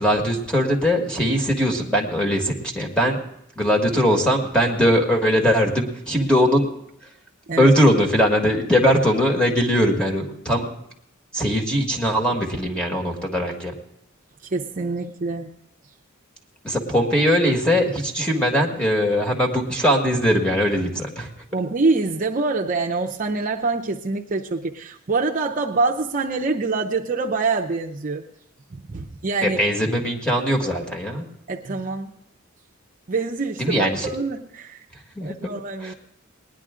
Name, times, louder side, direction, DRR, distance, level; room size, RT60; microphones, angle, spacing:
voice 1, 0.0-3.2 3.5-6.7 7.6-10.7 11.3-13.7 16.6-21.3 29.4-31.2 33.6-34.1 35.1-35.4 35.8-35.9, equal, 5° left, 1 dB, 1.8 m, -20 dB
voice 2, 14.5-15.5 21.5-28.2 28.7-29.6 31.5-32.1 33.1-34.8 35.2-35.9, right 3 dB, 40° right, 1 dB, 0.6 m, -25 dB
19.5 x 10.5 x 3.7 m, 0.77 s
head